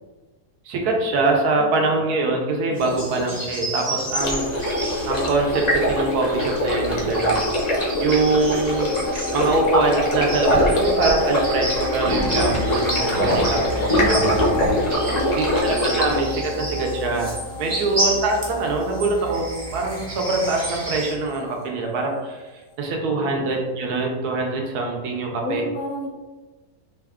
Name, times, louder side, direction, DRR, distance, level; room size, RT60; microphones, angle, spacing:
voice 1, 0.7-4.7 5.0-7.4 8.0-8.9 9.3-14.6 15.4-22.4 22.8-25.6, right 3 dB, 75° right, 1 dB, 1.2 m, -23 dB
voice 2, 2.7-3.2 6.9-7.1 12.1-12.7 15.0-16.5 17.6-18.0 23.1-23.5 25.4-26.1, left 1 dB, 65° left, 0 dB, 1.0 m, -34 dB
sound 1, 2.8-21.1, right 1 dB, 35° right, 0.8 m, -31 dB
Stream, 4.2-16.2, equal, 45° left, 0.5 m, -23 dB
sound 2, 8.6-22.3 22.7-22.8, left 2 dB, 90° left, 1.3 m, -35 dB
3.3 x 2.3 x 3.5 m, 1.2 s
omnidirectional pair, 1.7 m